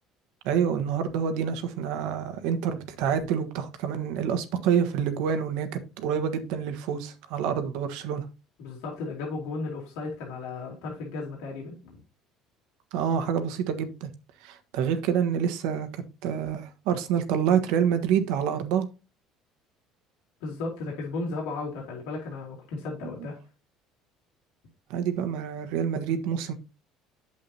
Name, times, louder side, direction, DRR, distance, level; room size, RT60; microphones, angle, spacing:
voice 1, 0.4-8.3 12.9-14.1 14.4-18.9 23.0-23.1 24.9-26.5, right 8 dB, 80° right, 1.3 m, -27 dB
voice 2, 8.6-12.0 20.4-23.4, left 3 dB, 85° left, 3.1 m, -35 dB
8.6 x 7.6 x 2.8 m
cardioid pair, 120°, 0 cm